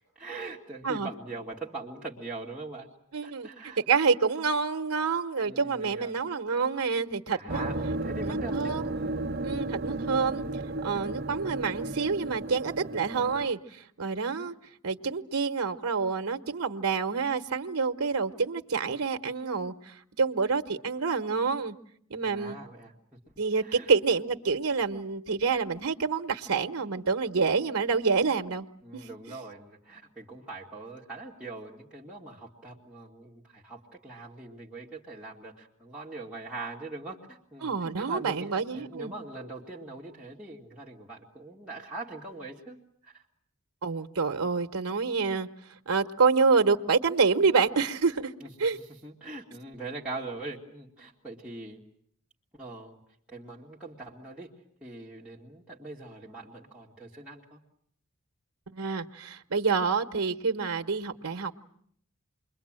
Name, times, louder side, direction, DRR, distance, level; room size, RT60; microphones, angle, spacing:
voice 1, 0.2-2.9 3.2-3.8 5.4-6.2 7.3-9.3 9.8-10.2 22.2-23.9 28.8-42.8 43.0-43.2 48.4-51.8 52.5-53.0 53.3-54.5 54.8-57.6, right 2 dB, 5° right, -7 dB, 2.3 m, -42 dB
voice 2, 3.1-3.5 3.9-7.6 8.2-8.9 9.4-10.4 10.8-14.5 14.8-21.8 22.1-22.6 23.4-28.7 28.9-29.1 37.6-39.1 43.8-45.5 45.9-48.3 48.6-48.8 58.7-61.5, right 5 dB, 80° right, 6 dB, 1.2 m, -27 dB
sound 1, 7.5-13.5, right 2 dB, 45° right, 1.1 m, -33 dB
28.5 x 22.5 x 8.9 m, 0.65 s
head